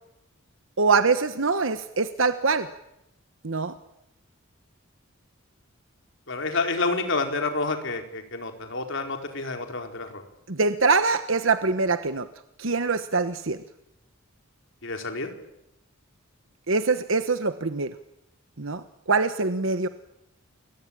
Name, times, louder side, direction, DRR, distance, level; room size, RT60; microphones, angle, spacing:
voice 1, 0.8-2.7 3.4-3.7 10.5-12.3 12.6-13.6 16.7-17.9 18.6-19.9, right 4 dB, 65° right, 10 dB, 1.2 m, -24 dB
voice 2, 6.3-10.1 14.8-15.3, left 3 dB, 65° left, 5 dB, 4.5 m, -28 dB
29.0 x 23.0 x 8.9 m, 0.85 s
head